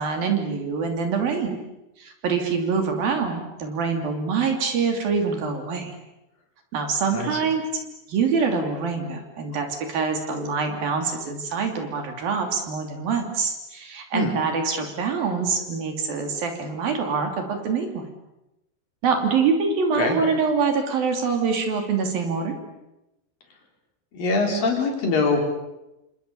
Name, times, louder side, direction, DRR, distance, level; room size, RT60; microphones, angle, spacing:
voice 1, 0.0-1.6 2.0-5.9 6.7-7.7 8.1-18.0 19.0-22.6, right 5 dB, 60° right, 4 dB, 4.6 m, -25 dB
voice 2, 7.1-7.4 14.1-14.3 20.0-20.2 24.1-25.4, left 3 dB, 55° left, 2 dB, 5.5 m, -23 dB
29.0 x 26.5 x 7.1 m, 0.92 s
omnidirectional pair, 4.9 m